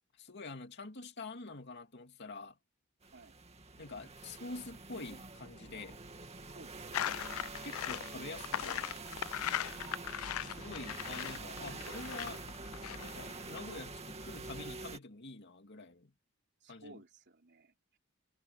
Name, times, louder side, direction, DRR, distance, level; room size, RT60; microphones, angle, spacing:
voice 1, 0.1-2.6 3.8-6.0 7.6-8.9 10.4-12.4 12.9-16.1 16.7-17.0, left 3 dB, 55° left, 2.6 m, -46 dB
sound 1, 3.0-15.0, right 3 dB, 30° right, 2.3 m, -46 dB
voice 2, 6.5-7.3 9.2-9.6 16.6-18.0, right 2 dB, 55° right, 3.8 m, -57 dB
sound 2, 6.9-13.6, left 11 dB, 80° left, 0.4 m, -39 dB
head